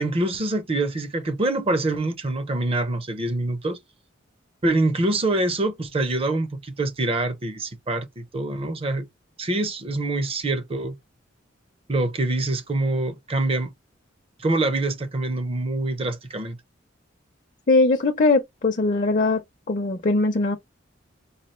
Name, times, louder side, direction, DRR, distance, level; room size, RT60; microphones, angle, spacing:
voice 1, 0.0-3.8 4.6-9.1 9.4-11.0 11.9-13.7 14.4-16.6, right 2 dB, 30° right, 0.6 m, -25 dB
voice 2, 17.7-19.4 19.7-20.6, left 3 dB, 45° left, 0.6 m, -20 dB
4.1 x 2.3 x 3.1 m
head